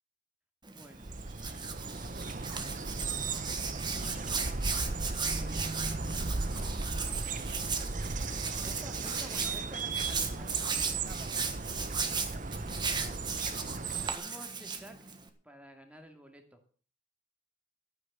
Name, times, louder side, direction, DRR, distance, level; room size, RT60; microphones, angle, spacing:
Hands, 0.6-15.3, right 5 dB, 25° right, 1.6 m, -37 dB
voice 1, 0.7-2.9 8.6-13.2 14.1-15.2 15.4-16.6, equal, 5° right, 5 dB, 2.5 m, -53 dB
sound 1, 0.9-14.2, right 3 dB, 40° right, 1.0 m, -36 dB
13.5 x 9.2 x 7.0 m, 0.42 s
head